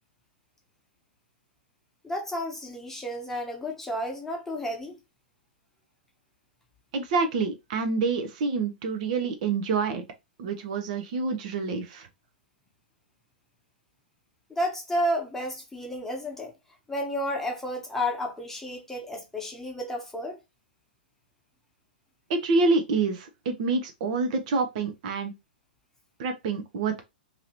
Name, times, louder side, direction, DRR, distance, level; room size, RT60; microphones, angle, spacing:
voice 1, 2.0-5.0 14.5-16.5 16.9-20.4, equal, 5° left, 1.0 m, -31 dB
voice 2, 6.9-10.0 10.4-12.1 22.3-25.3 26.2-27.0, right 4 dB, 45° right, 0.6 m, -27 dB
2.8 x 2.7 x 2.9 m
figure-of-eight pair, 105°, 5 cm